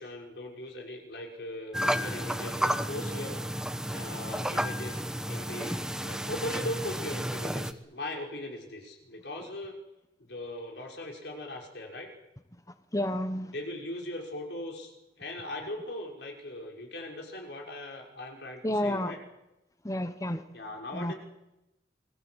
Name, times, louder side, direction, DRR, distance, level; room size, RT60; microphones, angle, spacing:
voice 1, 0.0-3.4 3.9-9.7 10.2-12.1 13.5-19.2 20.5-21.1, left 1 dB, 70° left, 1 dB, 6.1 m, -39 dB
sound 1, 1.7-7.7, equal, 5° right, 1.1 m, -32 dB
voice 2, 12.9-13.5 18.6-19.1 19.8-20.4 20.9-21.1, left 1 dB, 20° left, 10 dB, 1.2 m, -30 dB
28.0 x 22.5 x 8.1 m, 0.95 s
head